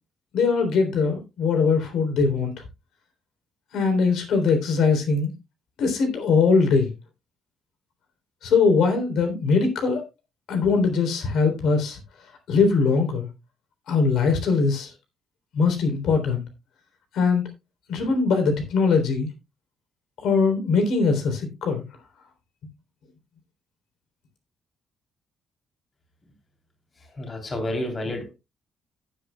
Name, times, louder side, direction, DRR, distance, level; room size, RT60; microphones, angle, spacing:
voice 1, 0.3-2.5 3.7-5.3 5.8-6.9 8.4-10.0 10.5-12.0 12.5-13.3 13.9-14.9 15.5-16.4 17.1-17.4 17.9-19.3 20.2-21.8, left 4 dB, 80° left, 6 dB, 3.5 m, -21 dB
voice 2, 27.2-28.3, left 1 dB, 30° left, 4 dB, 3.4 m, -29 dB
17.5 x 8.3 x 2.3 m, 0.24 s
cardioid pair, 150°, 0 cm